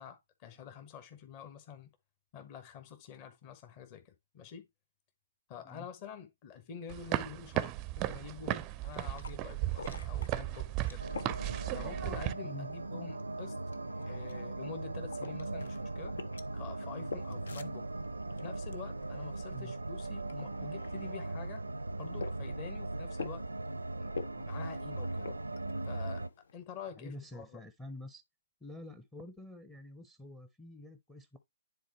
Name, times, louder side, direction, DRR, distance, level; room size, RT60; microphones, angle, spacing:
voice 1, 0.0-1.9 2.3-4.7 5.5-11.0 11.7-13.6 14.1-16.2 16.5-17.9 18.4-21.6 22.0-23.4 24.0-25.3 25.9-26.2 26.5-27.6, left 8 dB, 35° left, 1.3 m, -47 dB
sound 1, 6.9-12.3, right 15 dB, 25° right, 0.5 m, -35 dB
sound 2, 8.7-26.5, left 4 dB, 65° left, 0.7 m, -49 dB
sound 3, 11.0-26.3, right 2 dB, 90° right, 0.6 m, -39 dB
voice 2, 27.0-28.2 28.6-31.4, left 1 dB, 5° left, 0.7 m, -48 dB
10.0 x 4.0 x 3.1 m
figure-of-eight pair, 125°, 0 cm